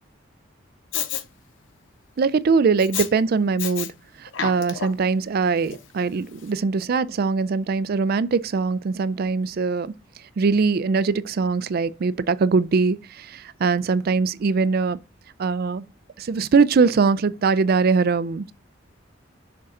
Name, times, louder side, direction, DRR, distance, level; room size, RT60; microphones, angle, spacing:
Respiratory sounds, 0.9-1.2 2.8-3.1 3.6-3.9 4.3-5.1 5.7-5.8, left 9 dB, 70° left, 0.7 m, -29 dB
voice 1, 2.2-3.9 4.2-9.9 10.4-15.0 15.4-15.8 16.2-18.5, right 4 dB, 50° right, 0.4 m, -22 dB
6.6 x 3.7 x 4.1 m
head